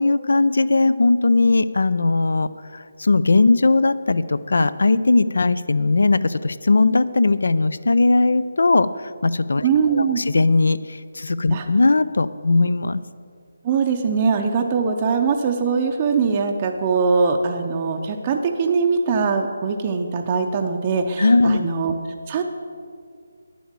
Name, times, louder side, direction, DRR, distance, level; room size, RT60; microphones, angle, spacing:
voice 1, 0.0-8.9 9.2-13.0 21.2-21.6, left 3 dB, 75° left, 15 dB, 0.5 m, -19 dB
voice 2, 9.6-10.2 11.5-11.7 13.6-21.9 22.3-22.4, right 5 dB, 20° right, 2 dB, 0.5 m, -21 dB
9.9 x 7.2 x 7.3 m, 2.2 s
hypercardioid pair, 170°, 0 cm